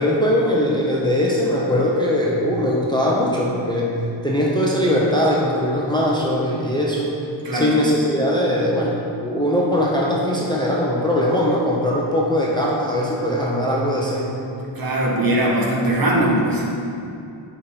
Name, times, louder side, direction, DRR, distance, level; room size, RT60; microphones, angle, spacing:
voice 1, 0.0-4.0 4.2-7.1 7.5-14.4, left 1 dB, 10° left, -4 dB, 0.6 m, -20 dB
voice 2, 14.7-16.7, right 1 dB, 45° right, -4 dB, 1.2 m, -20 dB
6.8 x 5.2 x 3.5 m, 2.6 s
wide cardioid pair, 120°, 49 cm